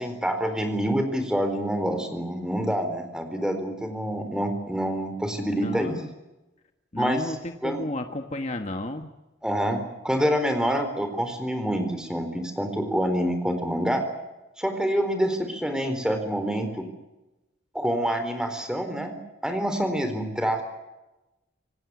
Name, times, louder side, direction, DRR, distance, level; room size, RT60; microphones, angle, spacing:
voice 1, 0.0-6.0 7.0-7.3 7.6-7.8 9.4-14.0 14.6-16.9 17.7-19.2 19.4-20.6, equal, 5° right, 7 dB, 4.1 m, -27 dB
voice 2, 5.5-6.1 6.9-9.1, left 1 dB, 35° left, 6 dB, 1.4 m, -32 dB
27.5 x 18.5 x 9.6 m, 1.0 s
head